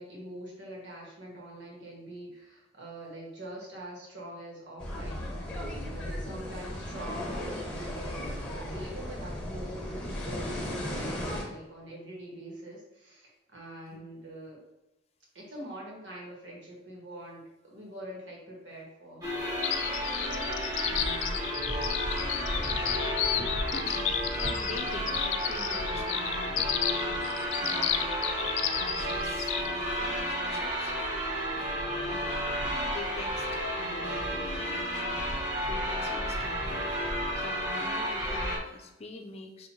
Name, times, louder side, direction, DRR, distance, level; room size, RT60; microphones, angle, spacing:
voice 1, 0.0-14.6 15.3-19.3 31.9-32.4, right 1 dB, 85° right, -3 dB, 1.5 m, -44 dB
sound 1, 4.8-11.4, equal, 10° left, 1.3 m, -36 dB
sound 2, 19.2-38.6, equal, 20° right, 1.1 m, -32 dB
sound 3, 19.6-29.7, left 11 dB, 90° left, 0.3 m, -32 dB
voice 2, 20.8-21.5 23.7-27.2 27.6-28.5 28.7-31.0 32.9-35.4 35.7-36.9 37.3-39.7, left 2 dB, 35° left, 4 dB, 0.5 m, -44 dB
5.7 x 2.7 x 3.0 m, 0.96 s
head